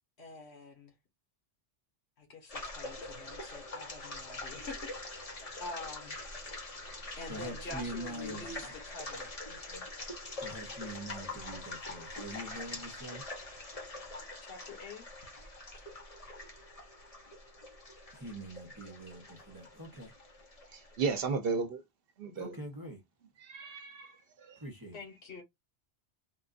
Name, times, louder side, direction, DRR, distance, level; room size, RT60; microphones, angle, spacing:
voice 1, 0.2-0.9 2.2-5.3 5.6-6.2 7.2-9.8 14.4-15.0 24.9-25.4, left 3 dB, 65° left, 1.6 m, -46 dB
sound 1, 2.5-21.3, left 2 dB, 35° left, 0.9 m, -44 dB
voice 2, 6.9-8.7 10.3-13.2 18.1-20.1 22.3-23.0 24.6-25.0, right 1 dB, 20° right, 0.9 m, -44 dB
voice 3, 20.7-21.8 22.2-22.5 23.4-24.6, right 4 dB, 55° right, 0.9 m, -34 dB
3.8 x 2.5 x 2.5 m
omnidirectional pair, 1.2 m